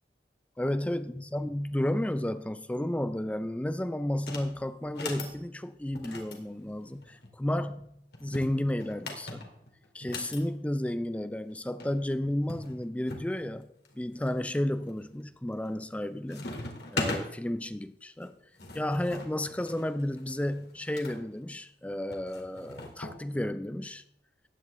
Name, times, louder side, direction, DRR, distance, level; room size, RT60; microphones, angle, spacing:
voice 1, 0.6-9.5 9.9-16.5 16.9-18.4 18.7-24.0, left 1 dB, 10° left, 0.4 m, -32 dB
sound 1, 4.2-4.5 4.9-5.4 6.0-7.3 8.1-10.4 11.5-11.6 11.8-11.9 12.5-13.3 13.8-14.4 14.9-15.3 15.6-16.0 16.3-17.3 18.2-21.2 22.1-23.2, left 2 dB, 65° left, 2.2 m, -39 dB
15.0 x 9.9 x 3.2 m
head